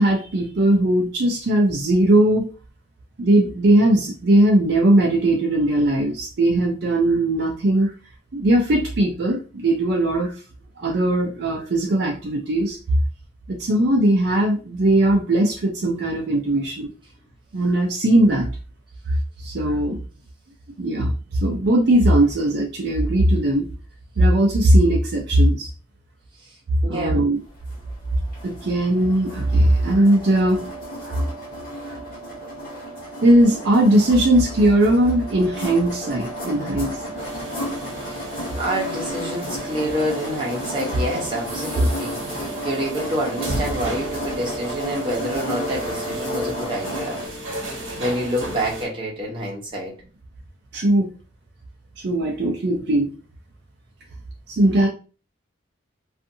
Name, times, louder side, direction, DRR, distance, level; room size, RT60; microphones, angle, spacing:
voice 1, 0.0-2.5 3.2-7.9 8.3-10.4 10.8-12.8 13.5-16.9 17.5-18.5 19.4-20.0 20.8-23.7 24.2-25.7 26.9-27.4 28.4-30.6 31.1-31.2 33.2-37.0 50.7-51.1 52.0-53.1 54.5-54.9, right 1 dB, 55° right, 0 dB, 0.5 m, -19 dB
voice 2, 26.8-27.2 38.0-38.2 38.5-47.2 48.0-49.9, equal, 25° right, -3 dB, 0.8 m, -27 dB
sound 1, 27.5-47.2, right 1 dB, 45° left, 1.3 m, -32 dB
sound 2, 37.2-48.9, equal, 80° right, 1.0 m, -34 dB
2.6 x 2.4 x 2.6 m, 0.35 s
head